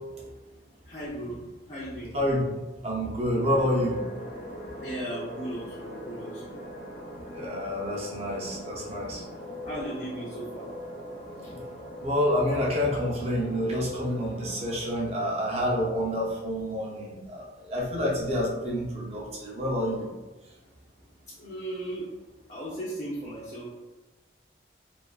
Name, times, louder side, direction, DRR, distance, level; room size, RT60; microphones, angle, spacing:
voice 1, 0.9-2.2 4.8-6.5 9.6-10.7 11.4-11.6 21.4-22.1 22.5-23.7, right 1 dB, 40° left, -7 dB, 0.5 m, -36 dB
voice 2, 2.1-2.5 2.8-4.0 7.3-9.2 12.0-20.1, equal, 35° right, -3 dB, 0.5 m, -28 dB
sound 1, 3.4-14.8, equal, 90° left, 0.9 m, -41 dB
2.5 x 2.4 x 2.3 m, 1.1 s
head